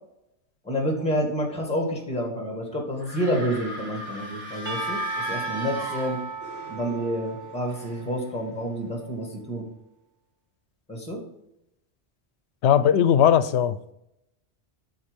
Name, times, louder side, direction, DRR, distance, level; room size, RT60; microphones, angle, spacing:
voice 1, 0.6-5.0 5.3-6.2 6.7-9.6 10.9-11.2, equal, 5° left, 1.9 m, -28 dB
sound 1, 3.0-6.7, left 1 dB, 45° right, 2.0 m, -37 dB
Percussion / Church bell, 4.7-8.8, right 4 dB, 15° right, 1.7 m, -35 dB
voice 2, 12.6-13.9, left 9 dB, 75° left, 0.9 m, -19 dB
11.5 x 4.0 x 5.2 m
omnidirectional pair, 1.1 m